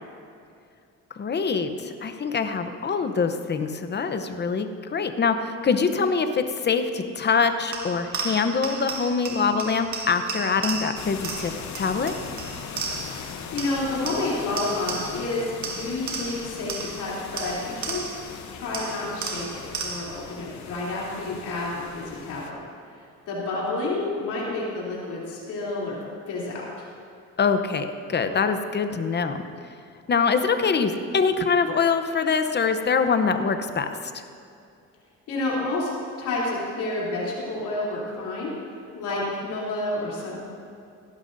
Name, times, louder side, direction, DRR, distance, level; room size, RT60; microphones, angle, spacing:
voice 1, 1.1-12.1 27.4-29.4 30.1-34.2, left 5 dB, 35° left, 8 dB, 0.8 m, -24 dB
sound 1, 7.7-13.3 13.6-15.3 15.6-18.3 18.7-20.2, right 4 dB, 70° right, 1.7 m, -34 dB
sound 2, 11.0-22.5, left 6 dB, 65° left, 1.0 m, -39 dB
voice 2, 13.2-18.0 18.5-22.6 23.3-26.0 26.3-26.6 35.3-35.9 36.2-38.5 38.9-40.4, left 2 dB, 85° left, -5 dB, 3.3 m, -29 dB
17.0 x 11.5 x 2.7 m, 2.4 s
cardioid pair, 90°, 30 cm